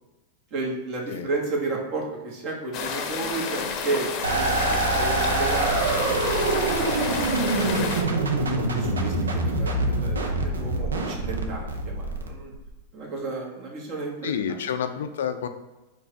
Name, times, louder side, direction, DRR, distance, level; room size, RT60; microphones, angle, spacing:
voice 1, 0.5-7.0 7.5-12.5 12.9-14.6, right 3 dB, 45° right, -1 dB, 1.3 m, -33 dB
sound 1, 2.7-8.0, left 5 dB, 45° left, 0.7 m, -30 dB
sound 2, 4.2-12.7, right 2 dB, 90° right, 0.6 m, -25 dB
voice 2, 14.2-15.5, left 8 dB, 75° left, 9 dB, 0.4 m, -29 dB
4.6 x 2.4 x 4.5 m, 1.1 s
hypercardioid pair, 105°, 0 cm